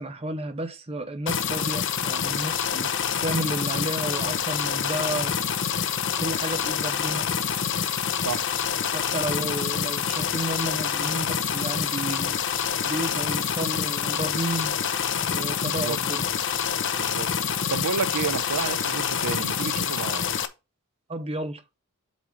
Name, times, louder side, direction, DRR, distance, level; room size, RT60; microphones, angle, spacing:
voice 1, 0.0-2.9 3.2-5.4 6.2-7.3 8.9-12.4 12.9-14.7 15.2-16.3 21.1-21.6, right 1 dB, 25° right, 1.0 m, -32 dB
sound 1, 1.3-20.5, left 7 dB, 55° left, 0.8 m, -27 dB
voice 2, 15.6-16.0 17.0-17.3 17.7-20.3, right 6 dB, 80° right, 0.5 m, -30 dB
8.3 x 2.9 x 6.2 m
head